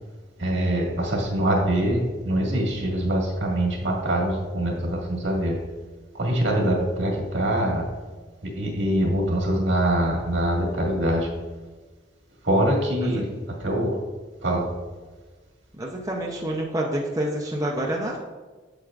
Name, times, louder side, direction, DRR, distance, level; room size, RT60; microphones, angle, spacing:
voice 1, 0.4-5.6 6.1-7.9 8.4-11.3 12.4-13.3 13.6-14.0 14.4-14.7, right 1 dB, 70° right, -1 dB, 1.8 m, -24 dB
voice 2, 15.7-18.2, right 1 dB, 20° right, -1 dB, 0.6 m, -28 dB
7.9 x 7.2 x 2.4 m, 1.3 s
head